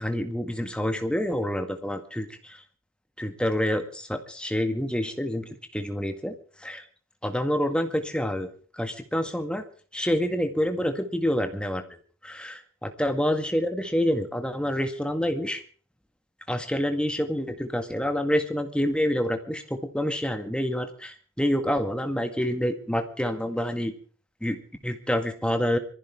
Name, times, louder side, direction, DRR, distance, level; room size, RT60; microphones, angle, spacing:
voice 1, 0.0-2.6 3.2-6.9 7.2-9.6 9.9-11.8 12.2-15.6 16.5-23.9 24.4-25.8, equal, 5° left, 6 dB, 1.8 m, -27 dB
24.5 x 15.0 x 3.5 m, 0.42 s
head